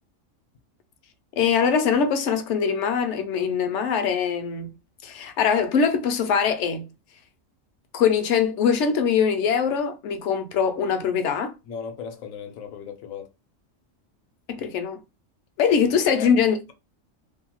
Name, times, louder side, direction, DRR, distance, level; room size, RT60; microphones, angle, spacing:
voice 1, 1.4-4.8 5.0-6.9 7.9-11.5 14.5-15.0 15.6-16.7, left 6 dB, 65° left, 0.8 m, -22 dB
voice 2, 11.6-13.3 16.1-16.3, left 7 dB, 85° left, 1.1 m, -36 dB
2.7 x 2.2 x 2.9 m
omnidirectional pair, 1.4 m